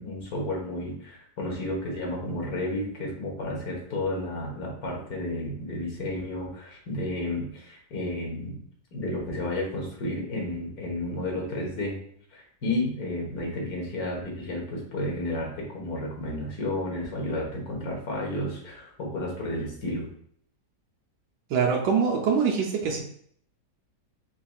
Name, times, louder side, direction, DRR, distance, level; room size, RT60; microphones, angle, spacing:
voice 1, 0.0-8.6 8.9-11.9 12.3-20.1, left 1 dB, 65° left, -1 dB, 1.9 m, -32 dB
voice 2, 21.5-23.0, right 6 dB, 85° right, -1 dB, 1.3 m, -24 dB
4.7 x 4.3 x 2.4 m, 0.64 s
omnidirectional pair, 1.8 m